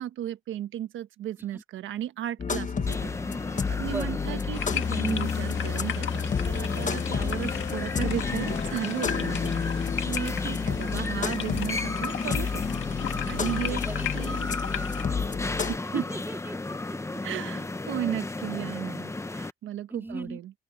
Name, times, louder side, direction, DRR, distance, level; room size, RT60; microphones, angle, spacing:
voice 1, 0.0-3.1 3.7-12.9 13.3-13.8 14.1-14.5 15.7-16.0 17.2-20.5, right 11 dB, 80° right, 1.3 m, -35 dB
sound 1, 2.4-15.8, left 6 dB, 40° left, 1.6 m, -31 dB
sound 2, 2.9-19.5, left 2 dB, 15° left, 1.3 m, -34 dB
voice 2, 3.8-4.4 9.0-9.7 10.2-10.8 13.5-15.3 15.9-16.6 16.9-17.2 19.9-20.4, right 2 dB, 10° right, 2.9 m, -41 dB
sound 3, 4.5-15.0, left 10 dB, 75° left, 1.7 m, -37 dB
open air
cardioid pair, 90°, 20 cm